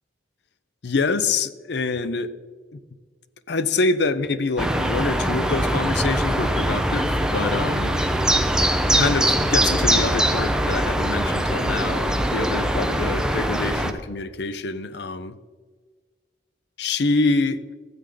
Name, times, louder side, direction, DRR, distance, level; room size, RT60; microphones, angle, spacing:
voice 1, 0.8-2.3 2.7-2.8 3.5-7.9 8.9-15.4 16.8-17.6, left 3 dB, 65° left, 0.6 m, -25 dB
sound 1, 4.6-13.9, right 1 dB, 5° right, 0.6 m, -22 dB
13.5 x 8.2 x 3.8 m
head